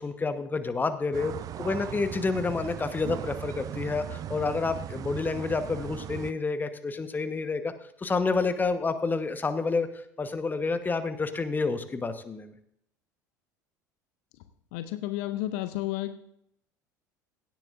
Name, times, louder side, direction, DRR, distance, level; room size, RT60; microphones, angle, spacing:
voice 1, 0.0-7.7 8.0-9.9 10.2-12.5, left 4 dB, 20° left, 10 dB, 1.1 m, -29 dB
sound 1, 1.1-6.3, right 11 dB, 40° right, 0.4 m, -38 dB
voice 2, 14.7-16.2, left 15 dB, 60° left, 11 dB, 0.6 m, -31 dB
16.5 x 10.5 x 2.5 m, 0.73 s
figure-of-eight pair, 65°, 10 cm